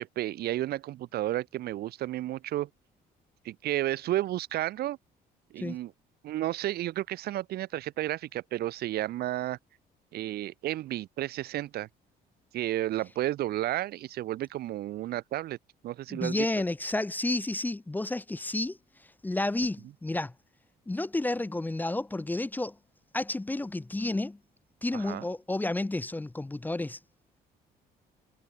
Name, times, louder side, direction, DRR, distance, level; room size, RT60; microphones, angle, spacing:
voice 1, 0.0-2.7 3.4-5.0 5.5-5.9 6.2-9.6 10.1-11.9 12.5-15.6 15.8-16.5 24.9-25.2, right 14 dB, 70° right, 1.2 m, -32 dB
voice 2, 16.1-18.8 19.2-20.3 20.9-22.8 23.1-24.4 24.8-27.0, left 2 dB, 10° left, 0.9 m, -31 dB
cardioid pair, 110°, 17 cm